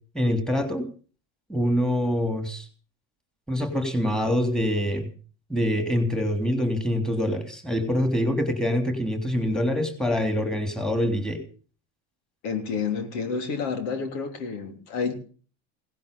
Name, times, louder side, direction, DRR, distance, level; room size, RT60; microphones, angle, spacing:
voice 1, 0.1-0.9 1.5-2.7 3.5-5.1 5.5-11.4, equal, ahead, 6 dB, 3.2 m, -25 dB
voice 2, 12.4-15.1, left 5 dB, 75° left, 6 dB, 3.3 m, -29 dB
17.5 x 10.5 x 6.8 m, 0.41 s
supercardioid pair, 115°, 36 cm